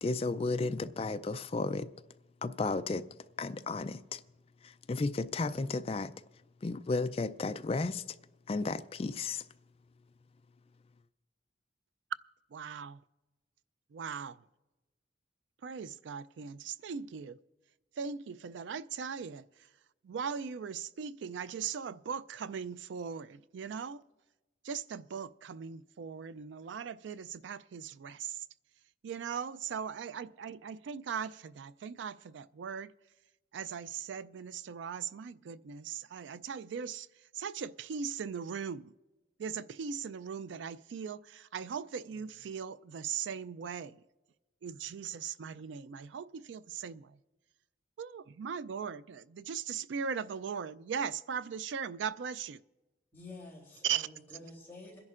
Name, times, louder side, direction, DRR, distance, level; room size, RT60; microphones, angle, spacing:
voice 1, 0.0-1.9 2.4-3.0 3.4-4.2 4.9-6.1 6.6-8.0 8.5-9.4, left 3 dB, 30° left, 0.3 m, -33 dB
voice 2, 12.5-13.0 13.9-14.4 15.6-17.4 18.0-19.4 20.0-24.0 24.6-28.5 29.0-32.9 33.5-37.1 37.3-38.9 39.4-44.0 44.6-47.2 48.0-52.6 53.8-54.1, right 7 dB, 75° right, 0.3 m, -39 dB
voice 3, 53.1-55.0, left 2 dB, 10° left, 3.3 m, -49 dB
27.5 x 10.5 x 2.5 m
head